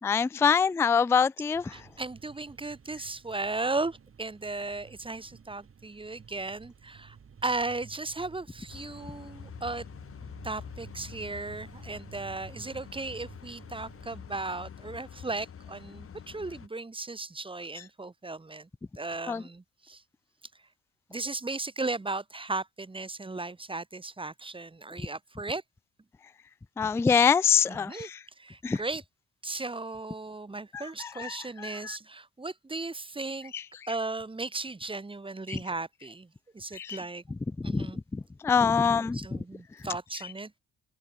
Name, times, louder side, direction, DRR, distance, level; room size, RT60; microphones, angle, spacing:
voice 1, 0.0-1.7 19.3-19.4 26.8-28.2 28.6-28.8 30.7-32.0 33.5-33.6 35.5-35.6 36.7-37.0 37.6-37.9 38.1-39.4, left 6 dB, 10° left, 0.3 m, -25 dB
sound 1, 1.5-14.2, right 6 dB, 45° right, 6.1 m, -53 dB
voice 2, 1.7-7.2 7.4-9.8 10.4-18.7 19.0-20.0 21.1-25.6 27.7-28.1 28.4-29.0 29.4-33.5 33.9-36.3 36.5-37.2 37.6-38.0 38.8-40.5, right 3 dB, 15° right, 1.6 m, -36 dB
sound 2, 8.7-16.7, left 8 dB, 45° left, 1.8 m, -46 dB
open air
cardioid pair, 90°, 31 cm